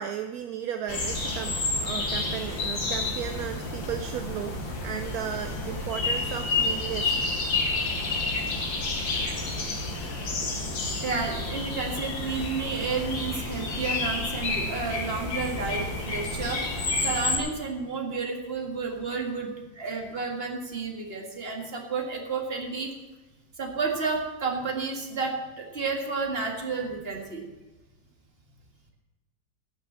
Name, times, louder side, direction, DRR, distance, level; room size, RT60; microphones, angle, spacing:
voice 1, 0.0-7.1, right 9 dB, 65° right, 7 dB, 0.9 m, -35 dB
sound 1, 0.9-17.4, left 3 dB, 85° left, 2.7 m, -30 dB
voice 2, 11.0-16.6 17.0-22.9 23.6-27.4, right 4 dB, 30° right, 1 dB, 1.9 m, -31 dB
16.5 x 5.9 x 7.3 m, 1.1 s
omnidirectional pair, 2.0 m